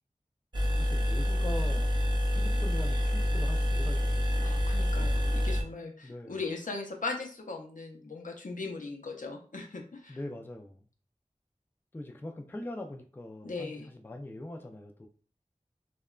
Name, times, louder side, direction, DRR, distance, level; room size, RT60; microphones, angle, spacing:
sound 1, 0.5-5.6, left 1 dB, 35° right, 0.6 m, -27 dB
voice 1, 0.8-1.9 2.3-4.5 6.0-6.4 10.1-10.8 11.9-15.1, left 1 dB, 15° left, 0.3 m, -42 dB
voice 2, 4.4-10.2 13.4-13.9, left 3 dB, 75° left, 0.5 m, -39 dB
2.8 x 2.2 x 2.3 m
wide cardioid pair, 45°, 14 cm